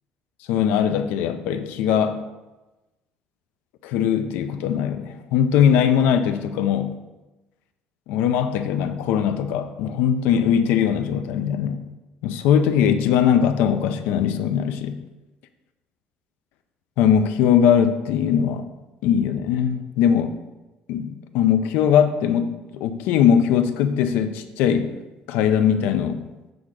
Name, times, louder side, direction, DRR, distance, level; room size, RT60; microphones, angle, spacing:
voice 1, 0.5-2.2 3.8-7.0 8.1-11.8 12.2-15.0 17.0-18.7 19.0-20.4 20.9-25.0 25.3-26.3, left 8 dB, 80° left, 9 dB, 0.7 m, -20 dB
7.9 x 3.6 x 6.5 m, 1.1 s
cardioid pair, 170°, 3 cm